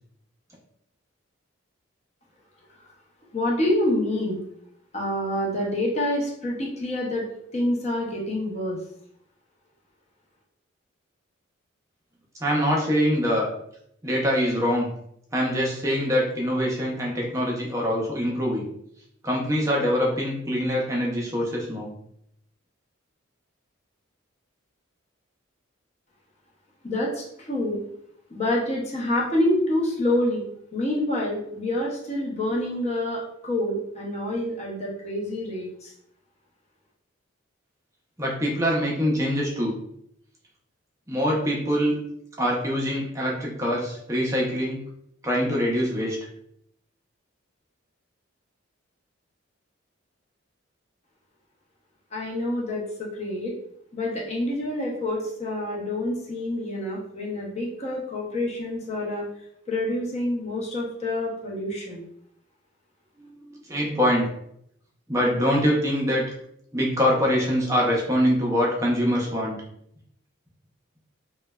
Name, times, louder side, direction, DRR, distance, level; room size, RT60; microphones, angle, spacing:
voice 1, 3.3-4.4 4.9-7.2 7.5-8.8 26.8-27.8 28.3-30.4 30.7-35.9 52.1-53.5 53.9-59.2 59.7-62.0, left 1 dB, 35° left, -3 dB, 0.7 m, -27 dB
voice 2, 12.4-13.5 14.0-14.9 15.3-18.6 19.2-21.9 38.2-39.7 41.1-42.0 42.4-44.8 45.2-46.2 63.2-64.2 65.1-66.2 66.7-69.6, equal, 15° right, -2 dB, 0.5 m, -24 dB
3.1 x 2.1 x 2.2 m, 0.72 s
head